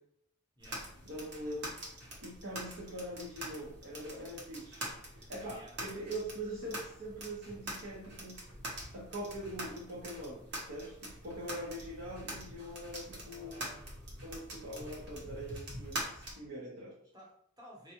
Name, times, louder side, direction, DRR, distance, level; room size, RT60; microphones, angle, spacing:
voice 1, 0.6-0.9 5.4-5.8 13.2-13.9 17.1-17.9, equal, 20° right, -4 dB, 0.9 m, -55 dB
sound 1, 0.6-16.3, right 1 dB, 55° right, 0.8 m, -45 dB
voice 2, 1.1-1.8 2.2-4.9 5.1-8.4 8.9-13.6 14.2-17.0, right 1 dB, 80° right, -6 dB, 0.9 m, -43 dB
4.0 x 2.2 x 3.0 m, 0.70 s
head